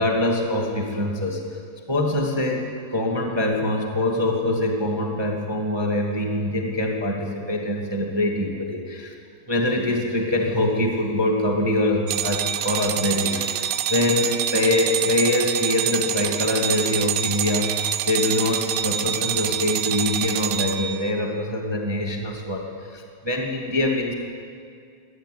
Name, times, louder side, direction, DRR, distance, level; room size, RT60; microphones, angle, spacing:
voice 1, 0.0-1.4 1.9-2.6 2.9-9.1 9.5-17.7 18.1-22.6 22.9-24.1, left 1 dB, 30° right, 0 dB, 0.5 m, -24 dB
sound 1, 12.1-21.1, right 10 dB, 80° right, 2.6 m, -26 dB
22.0 x 16.5 x 9.3 m, 2.3 s
omnidirectional pair, 4.5 m